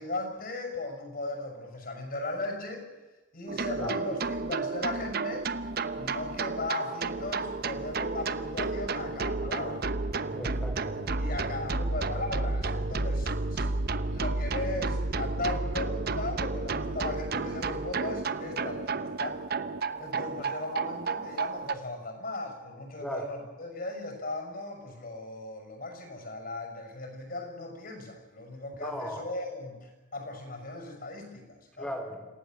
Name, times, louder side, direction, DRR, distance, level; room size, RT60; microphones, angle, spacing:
voice 1, 0.0-2.9 3.3-5.5 6.0-9.8 11.1-13.7 14.1-19.4 20.0-31.9, left 2 dB, 50° left, 5 dB, 6.1 m, -37 dB
sound 1, 3.5-21.7, right 3 dB, 55° right, 0.9 m, -31 dB
voice 2, 10.3-11.2 23.0-23.3 28.8-29.3 31.8-32.3, equal, 5° left, 4 dB, 3.4 m, -37 dB
27.5 x 17.5 x 7.6 m, 1.2 s
head